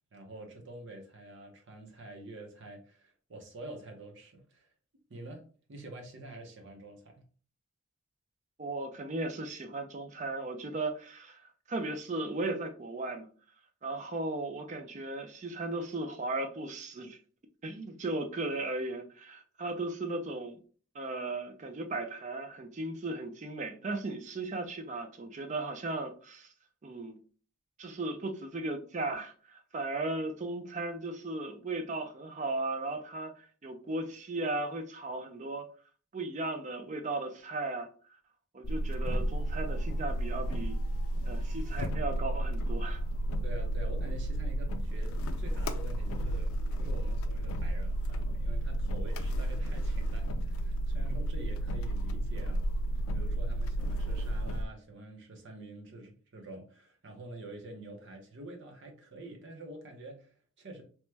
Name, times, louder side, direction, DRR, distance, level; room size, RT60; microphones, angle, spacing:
voice 1, 0.1-4.7 5.1-7.2 43.4-52.6 53.1-60.8, right 2 dB, 60° right, 0.8 m, -47 dB
voice 2, 8.6-11.4 11.7-13.3 13.8-17.2 17.6-20.6 20.9-26.5 26.8-27.2 27.8-35.7 36.1-37.9 38.5-40.8 41.3-43.0, right 2 dB, 35° right, 0.4 m, -36 dB
sound 1, 38.6-54.6, right 1 dB, 90° left, 0.4 m, -32 dB
3.0 x 2.2 x 3.2 m
head